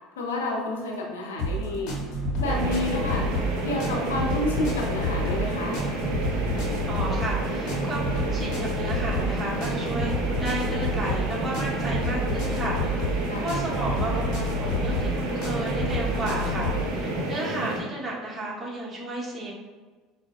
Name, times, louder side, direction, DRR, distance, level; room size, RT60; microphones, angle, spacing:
voice 1, 0.2-2.0 2.4-3.3 3.6-5.8 13.3-13.5, left 1 dB, 90° left, -1 dB, 0.6 m, -30 dB
sound 1, 1.4-16.9, left 1 dB, 60° left, 1.1 m, -29 dB
sound 2, 2.4-17.8, right 1 dB, 75° right, 0.6 m, -30 dB
voice 2, 6.9-19.5, right 1 dB, 25° right, -5 dB, 1.2 m, -33 dB
4.6 x 2.2 x 2.5 m, 1.3 s
hypercardioid pair, 75°, 0 cm